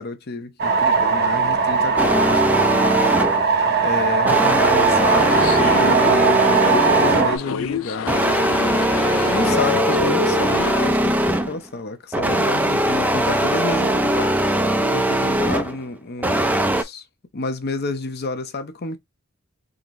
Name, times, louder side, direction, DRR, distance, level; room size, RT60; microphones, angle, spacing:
voice 1, 0.0-3.1 3.8-8.2 9.3-14.4 14.9-17.0 17.3-19.0, left 3 dB, 50° left, 0.7 m, -29 dB
sound 1, 0.6-7.4, right 5 dB, 50° right, 0.9 m, -19 dB
sound 2, 2.0-3.5 4.3-7.5 8.1-11.6 12.1-15.8 16.2-16.8, right 1 dB, 10° right, 0.4 m, -20 dB
sound 3, 5.0-10.9, left 7 dB, 70° left, 0.4 m, -27 dB
3.9 x 2.8 x 3.1 m
head